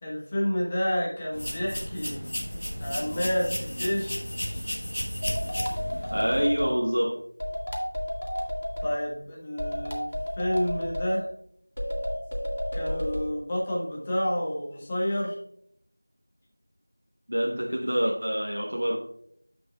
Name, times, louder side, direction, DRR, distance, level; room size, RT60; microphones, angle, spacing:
voice 1, 0.0-2.2 2.8-4.2 8.8-11.3 12.7-15.4, equal, 5° left, -4 dB, 0.5 m, -29 dB
sound 1, 1.3-6.4, equal, 40° left, 1.0 m, -33 dB
sound 2, 5.2-6.8 7.4-8.9 9.6-11.1 11.8-13.3, equal, 65° left, 1.9 m, -31 dB
voice 2, 6.1-7.2 17.3-19.0, equal, 55° right, -1 dB, 1.1 m, -26 dB
12.5 x 5.2 x 2.4 m, 0.70 s
figure-of-eight pair, 180°, 0 cm